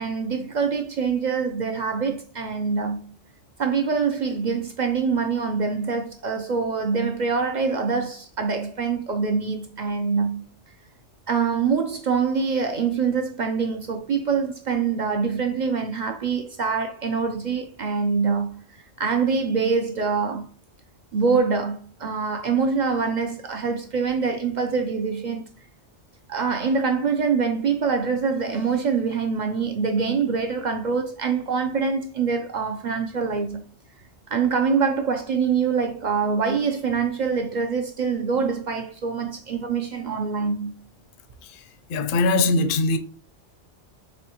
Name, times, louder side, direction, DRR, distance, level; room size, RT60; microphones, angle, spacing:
voice 1, 0.0-3.0 3.6-10.4 11.3-20.5 21.1-25.5 26.3-33.6 34.3-40.7, right 5 dB, 60° right, 0.5 m, -24 dB
voice 2, 41.9-43.0, left 3 dB, 60° left, 0.6 m, -21 dB
4.3 x 3.1 x 2.8 m
omnidirectional pair, 1.2 m